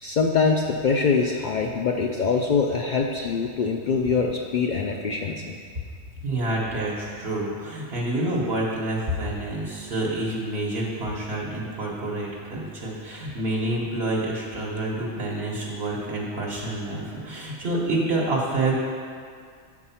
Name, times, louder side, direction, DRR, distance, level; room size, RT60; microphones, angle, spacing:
voice 1, 0.0-5.5, left 5 dB, 60° left, 1 dB, 0.5 m, -24 dB
voice 2, 6.2-18.8, right 2 dB, 60° right, -5 dB, 1.3 m, -28 dB
7.8 x 4.7 x 5.6 m, 2.2 s
omnidirectional pair, 1.2 m